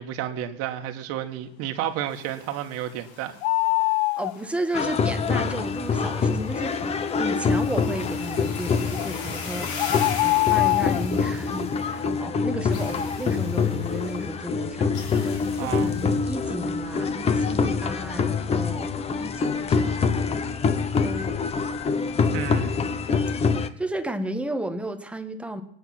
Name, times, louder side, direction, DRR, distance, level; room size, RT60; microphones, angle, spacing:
voice 1, 0.0-3.4 15.6-15.9 22.3-22.8, right 11 dB, 50° right, 1.8 m, -31 dB
sound 1, 2.1-12.1 12.7-14.1 14.9-16.2, left 5 dB, 50° left, 3.6 m, -41 dB
sound 2, 3.4-4.3 8.9-9.1 9.8-11.0, left 21 dB, 75° left, 0.5 m, -22 dB
voice 2, 4.2-9.8 10.2-18.9 19.2-20.4 21.0-21.5 22.1-22.3 23.8-25.6, right 1 dB, 5° right, 1.3 m, -33 dB
sound 3, 4.7-23.7, left 5 dB, 20° left, 0.8 m, -25 dB
22.0 x 9.4 x 6.0 m
supercardioid pair, 140°, 31 cm